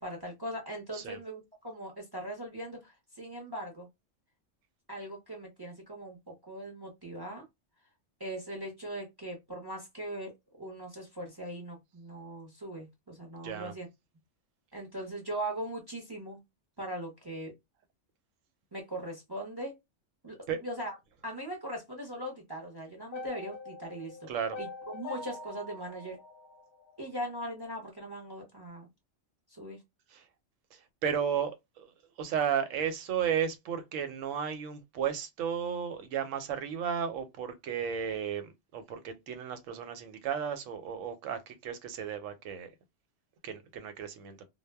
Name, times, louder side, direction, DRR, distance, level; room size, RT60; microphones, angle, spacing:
voice 1, 0.0-3.9 4.9-7.4 8.2-10.3 10.6-13.9 14.7-16.4 16.8-17.5 18.7-19.7 20.2-20.9 21.2-24.2 24.6-24.7 24.9-26.2 27.0-28.9 29.5-29.8, right 1 dB, 30° right, 0.4 m, -40 dB
voice 2, 13.4-13.7 20.5-20.6 24.3-24.6 30.1-30.2 30.7-31.9 32.2-42.7 43.4-44.5, right 8 dB, 85° right, 1.0 m, -34 dB
sound 1, 23.1-27.3, left 2 dB, 60° left, 0.6 m, -44 dB
2.1 x 2.0 x 3.3 m
omnidirectional pair, 1.3 m